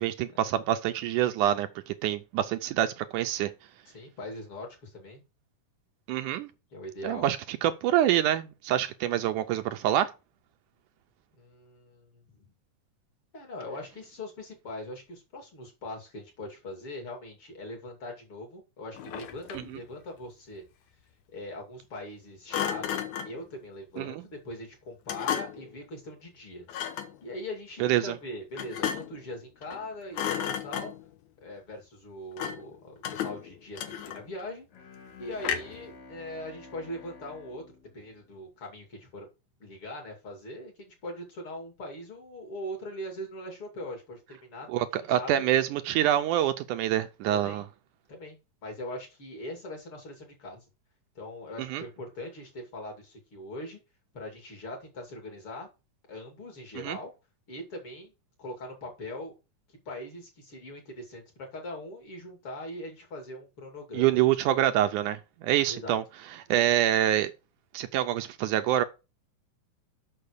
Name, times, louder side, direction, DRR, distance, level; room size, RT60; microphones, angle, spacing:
voice 1, 0.0-3.5 6.1-6.5 7.0-10.1 24.0-24.2 27.8-28.1 44.7-47.6 51.7-51.8 56.8-57.0 63.9-66.0 66.5-67.3 67.7-68.8, right 12 dB, 80° right, 2.0 m, -26 dB
voice 2, 3.8-5.2 6.7-7.3 11.4-12.4 13.3-20.6 21.3-26.8 27.2-30.9 31.4-34.7 35.2-37.6 37.9-39.3 39.6-44.7 45.0-45.3 47.3-47.7 48.1-50.6 51.1-53.8 54.1-55.7 56.1-57.1 57.5-58.1 58.4-59.3 59.8-61.2 61.5-64.0 65.7-66.0, left 1 dB, 40° left, 3.1 m, -41 dB
Thump thud, 18.9-19.8 22.5-23.4 25.1-25.7 26.7-27.2 28.6-29.2 29.6-29.9 30.1-31.1 32.4-32.7 33.0-34.4 35.4-35.9, left 9 dB, 70° left, 2.3 m, -33 dB
Bowed string instrument, 34.7-39.0, left 3 dB, 85° left, 4.0 m, -51 dB
6.7 x 6.2 x 6.5 m
omnidirectional pair, 3.8 m